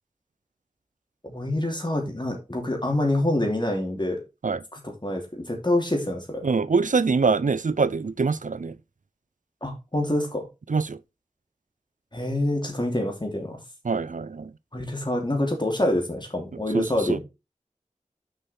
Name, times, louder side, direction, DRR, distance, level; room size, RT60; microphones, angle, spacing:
voice 1, 1.2-4.2 4.7-6.4 9.6-10.4 12.1-13.6 14.7-17.2, left 1 dB, 35° left, 2.7 m, -26 dB
voice 2, 6.4-8.7 10.7-11.0 13.8-14.5 16.7-17.2, right 4 dB, 85° right, 0.4 m, -24 dB
6.7 x 5.5 x 4.3 m
wide cardioid pair, 40°, 13 cm